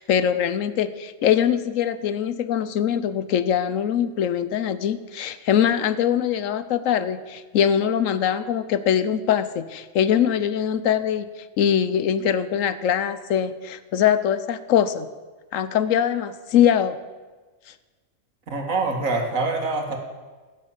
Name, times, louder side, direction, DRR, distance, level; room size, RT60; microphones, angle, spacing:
voice 1, 0.0-11.3 11.6-15.1 15.5-17.0, left 9 dB, 75° left, 14 dB, 1.1 m, -22 dB
voice 2, 18.5-20.0, right 3 dB, 90° right, 3 dB, 2.3 m, -25 dB
15.5 x 7.2 x 7.4 m, 1.3 s
omnidirectional pair, 1.4 m